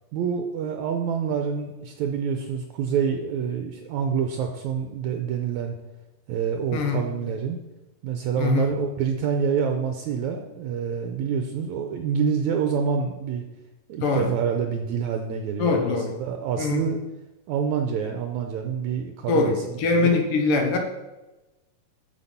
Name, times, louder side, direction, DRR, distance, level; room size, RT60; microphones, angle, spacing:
voice 1, 0.1-5.8 6.3-7.6 8.0-13.4 13.9-17.0 17.5-20.2, right 7 dB, 75° right, 5 dB, 1.9 m, -27 dB
voice 2, 6.7-7.0 8.4-8.7 14.0-14.3 15.6-16.1 16.6-16.9 19.3-20.8, left 4 dB, 75° left, 3 dB, 2.9 m, -23 dB
9.6 x 7.2 x 5.7 m, 1.1 s
omnidirectional pair, 3.8 m